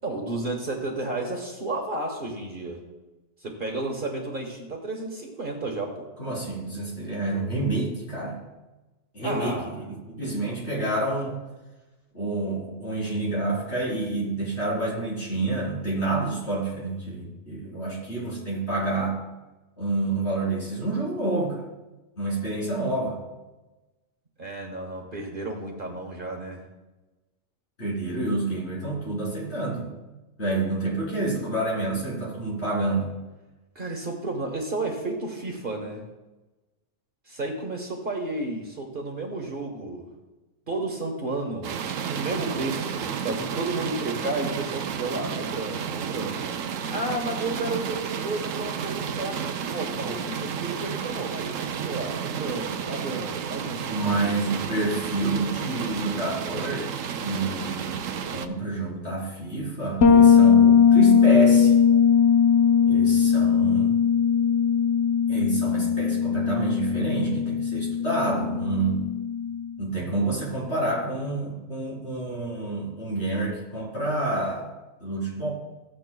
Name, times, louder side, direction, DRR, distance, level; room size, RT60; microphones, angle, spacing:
voice 1, 0.0-2.8 3.4-6.0 9.2-9.7 24.4-26.6 33.7-36.0 37.3-40.1 40.7-41.8 42.1-46.4 46.9-53.9, right 2 dB, 45° right, 1 dB, 1.3 m, -32 dB
voice 2, 6.2-8.4 9.1-11.4 12.1-19.2 19.8-21.7 22.2-23.2 27.8-29.9 30.4-33.2 53.8-61.8 62.9-64.0 65.3-69.0 69.8-74.7 75.0-75.5, right 2 dB, 55° left, -6 dB, 3.9 m, -28 dB
sound 1, 41.6-58.5, right 7 dB, 85° right, 1.0 m, -32 dB
Bass guitar, 60.0-69.7, left 7 dB, 80° left, 1.4 m, -19 dB
15.0 x 7.7 x 2.3 m, 1.1 s
omnidirectional pair, 1.3 m